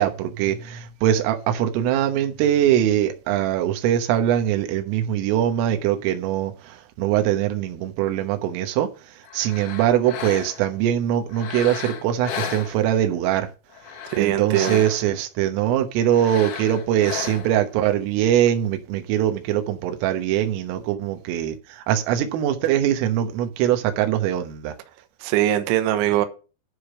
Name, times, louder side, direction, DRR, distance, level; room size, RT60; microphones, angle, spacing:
voice 1, 0.0-8.9 9.3-13.5 14.2-24.8, right 11 dB, 90° right, 3.8 m, -22 dB
sound 1, 9.2-10.8 11.3-13.2 13.7-15.2 16.1-17.7, left 9 dB, 80° left, 1.8 m, -34 dB
voice 2, 14.1-14.9 25.2-26.3, right 13 dB, 75° right, 2.9 m, -21 dB
12.5 x 4.9 x 6.3 m
omnidirectional pair, 5.6 m